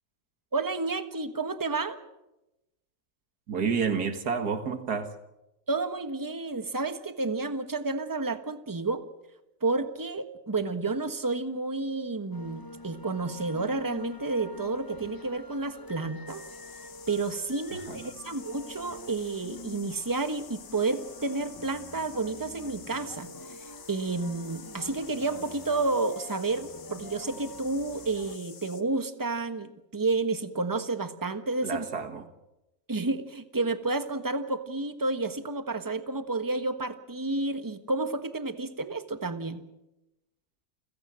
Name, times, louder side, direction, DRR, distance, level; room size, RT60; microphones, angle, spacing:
voice 1, 0.5-2.0 5.7-9.0 9.6-16.4 17.1-23.3 23.9-31.8 32.9-39.6, right 3 dB, 15° right, 1.3 m, -30 dB
voice 2, 3.5-5.1 17.7-18.1 31.6-32.2, right 6 dB, 80° right, 2.4 m, -30 dB
sound 1, 12.3-28.4, left 1 dB, 25° left, 0.5 m, -46 dB
sound 2, 16.3-28.8, left 7 dB, 55° left, 1.5 m, -49 dB
29.0 x 16.5 x 7.7 m
omnidirectional pair, 1.7 m